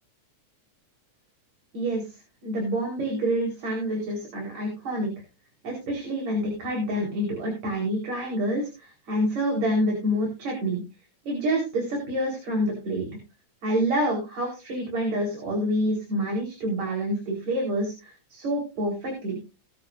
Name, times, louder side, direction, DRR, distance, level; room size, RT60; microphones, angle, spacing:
voice 1, 1.7-2.1 2.4-5.1 5.6-10.8 11.3-13.1 13.6-19.4, equal, 70° right, 0 dB, 5.8 m, -27 dB
21.0 x 7.4 x 2.6 m, 0.29 s
omnidirectional pair, 3.3 m